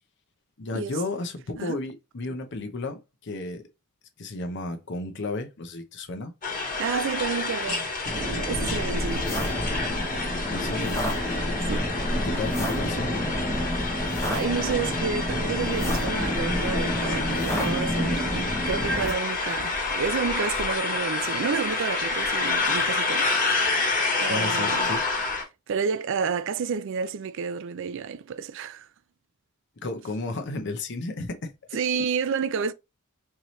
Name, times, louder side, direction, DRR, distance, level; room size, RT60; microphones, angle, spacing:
voice 1, 0.6-3.7 4.2-6.3 7.7-7.8 10.5-11.0 12.1-13.1 24.3-25.0 29.8-31.5, left 2 dB, 55° left, 0.7 m, -33 dB
sound 1, 6.4-25.4, left 3 dB, 35° left, 1.6 m, -28 dB
voice 2, 6.8-9.3 11.7-11.9 13.9-23.3 24.2-24.9 25.7-28.9 31.7-32.7, right 6 dB, 60° right, 0.4 m, -30 dB
sound 2, 8.0-19.1, equal, 15° left, 0.8 m, -29 dB
4.6 x 2.8 x 3.1 m
head